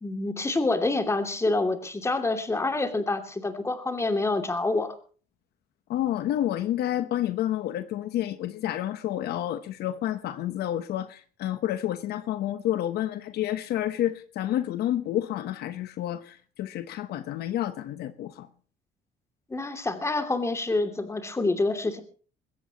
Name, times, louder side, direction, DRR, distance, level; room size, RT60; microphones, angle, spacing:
voice 1, 0.0-4.9 19.5-22.0, left 2 dB, 15° left, 2.7 m, -27 dB
voice 2, 5.9-18.5, left 12 dB, 75° left, 1.0 m, -29 dB
21.0 x 16.0 x 3.0 m
cardioid pair, 110°, 17 cm